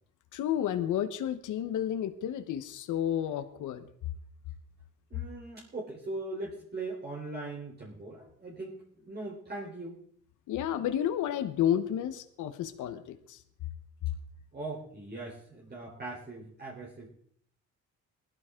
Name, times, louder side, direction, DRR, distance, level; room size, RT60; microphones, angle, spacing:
voice 1, 0.3-3.8 10.5-13.4, left 10 dB, 85° left, 9 dB, 1.3 m, -31 dB
voice 2, 5.1-10.0 14.5-17.1, right 2 dB, 35° right, -4 dB, 4.0 m, -40 dB
19.5 x 13.0 x 3.8 m, 0.63 s
cardioid pair, 90°, 30 cm